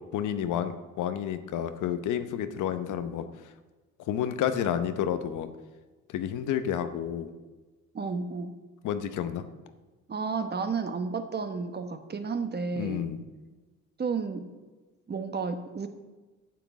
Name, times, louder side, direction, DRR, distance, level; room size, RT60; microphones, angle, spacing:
voice 1, 0.1-3.3 4.1-5.5 6.1-7.3 8.8-9.5 12.8-13.2, left 9 dB, 85° left, 10 dB, 0.9 m, -30 dB
voice 2, 7.9-8.5 10.1-13.1 14.0-14.5 15.1-15.9, right 5 dB, 35° right, 8 dB, 1.0 m, -32 dB
9.1 x 5.9 x 8.3 m, 1.2 s
cardioid pair, 90°, 30 cm